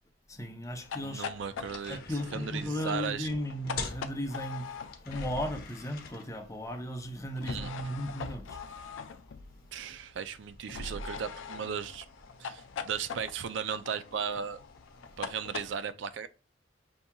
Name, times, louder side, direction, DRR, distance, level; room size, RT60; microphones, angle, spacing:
voice 1, 0.3-1.3 1.9-8.6 12.4-12.5, equal, 15° left, 0.6 m, -36 dB
sound 1, 0.7-15.7, left 4 dB, 50° left, 0.8 m, -49 dB
sound 2, 0.8-5.8 7.4-9.6 10.7-15.7, left 5 dB, 80° left, 0.4 m, -42 dB
voice 2, 0.9-2.0 2.3-3.3 7.4-7.7 9.7-12.1 12.4-14.6 15.2-16.3, right 7 dB, 70° right, 0.4 m, -36 dB
6.9 x 2.8 x 2.2 m
head